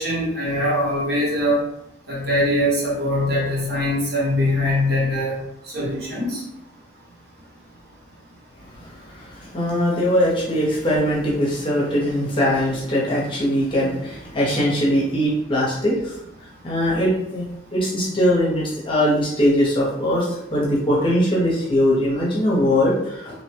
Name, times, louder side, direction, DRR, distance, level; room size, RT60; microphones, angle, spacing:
voice 1, 0.0-1.6 2.1-5.4 5.7-6.4, left 1 dB, 55° right, -5 dB, 0.9 m, -22 dB
voice 2, 8.8-16.2 16.6-23.4, equal, 25° left, -5 dB, 0.7 m, -21 dB
2.7 x 2.2 x 2.9 m, 0.80 s
head